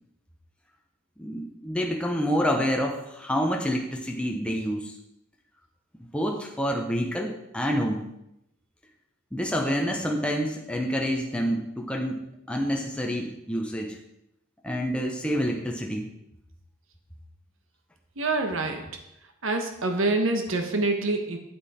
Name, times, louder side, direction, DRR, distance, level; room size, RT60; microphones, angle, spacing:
voice 1, 1.2-4.9 6.1-8.0 9.3-14.0 14.6-16.1, equal, 5° left, 1 dB, 0.8 m, -28 dB
voice 2, 18.2-18.9 19.4-21.4, right 2 dB, 75° right, 5 dB, 1.2 m, -26 dB
8.5 x 8.5 x 4.3 m, 0.81 s
head